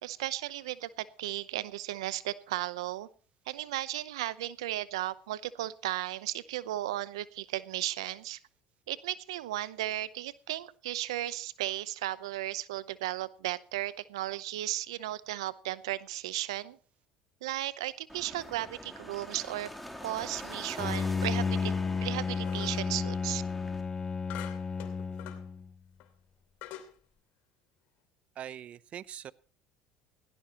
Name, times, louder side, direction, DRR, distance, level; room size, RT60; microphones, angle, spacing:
voice 1, 0.0-3.1 3.5-8.4 8.9-16.8 17.4-19.7 20.0-21.7 22.0-23.4, right 15 dB, 90° right, 17 dB, 0.7 m, -35 dB
sound 1, 18.1-23.8, equal, ahead, 3.3 m, -45 dB
Bowed string instrument, 20.8-25.7, left 5 dB, 25° left, 0.7 m, -32 dB
sound 2, 22.4-23.0 24.3-25.5 26.0-26.1 26.6-26.9, left 13 dB, 70° left, 2.8 m, -45 dB
voice 2, 28.4-29.3, right 10 dB, 50° right, 19 dB, 0.7 m, -42 dB
17.5 x 17.0 x 3.0 m, 0.40 s
supercardioid pair, 85°, 3 cm